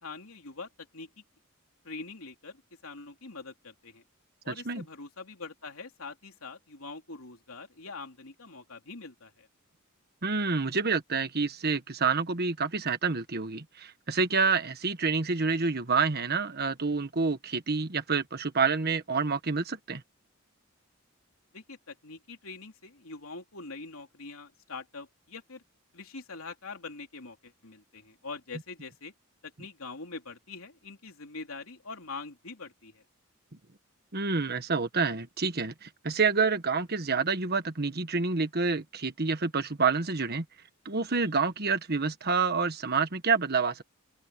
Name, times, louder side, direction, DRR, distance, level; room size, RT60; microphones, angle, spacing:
voice 1, 0.0-1.2 1.8-4.0 4.4-9.5 21.5-25.6 25.9-29.1 29.4-33.0, left 3 dB, 85° left, 3.2 m, -44 dB
voice 2, 10.2-20.0 34.1-40.4 40.8-43.8, right 4 dB, 50° right, 1.5 m, -28 dB
open air
head